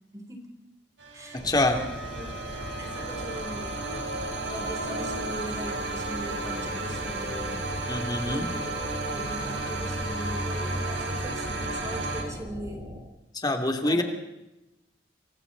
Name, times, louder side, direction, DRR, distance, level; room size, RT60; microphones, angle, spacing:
voice 1, 0.1-0.5 1.1-2.3 2.7-3.8 4.1-7.7 8.2-12.9 13.8-14.0, equal, 20° right, 3 dB, 3.9 m, -40 dB
sound 1, 1.0-12.2, right 2 dB, 85° right, 4.8 m, -33 dB
voice 2, 1.3-1.8 7.9-8.5 13.3-14.0, left 2 dB, 25° left, 4 dB, 2.9 m, -25 dB
sound 2, 1.4-13.0, equal, 55° right, 5.2 m, -40 dB
Wind instrument woodwind instrument, 1.8-5.6, right 3 dB, ahead, 3.8 m, -43 dB
29.0 x 24.0 x 4.2 m, 0.94 s
head